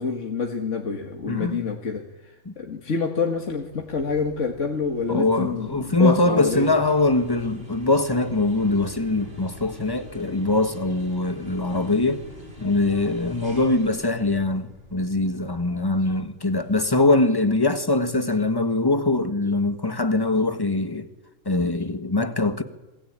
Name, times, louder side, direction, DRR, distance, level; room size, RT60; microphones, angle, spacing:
voice 1, 0.0-6.7, left 5 dB, 65° left, 2.2 m, -27 dB
voice 2, 1.3-1.6 2.4-2.5 5.1-12.2 12.6-21.1 21.4-22.6, left 2 dB, 20° left, 1.5 m, -22 dB
sound 1, 3.4-17.8, left 1 dB, 50° right, 5.6 m, -45 dB
27.0 x 22.5 x 8.9 m
omnidirectional pair, 1.3 m